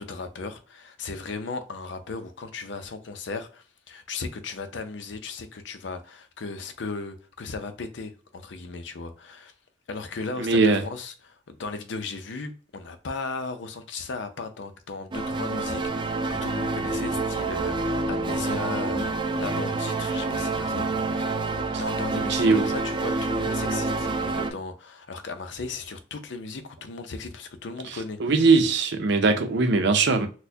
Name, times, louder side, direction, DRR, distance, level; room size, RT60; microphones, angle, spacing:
voice 1, 0.0-9.5 9.9-28.2, left 4 dB, 70° left, 0.6 m, -36 dB
voice 2, 10.4-10.8 22.3-22.7 28.2-30.3, right 4 dB, 70° right, 0.6 m, -20 dB
sound 1, 15.1-24.5, right 3 dB, 25° right, 0.3 m, -27 dB
4.2 x 2.2 x 2.7 m
head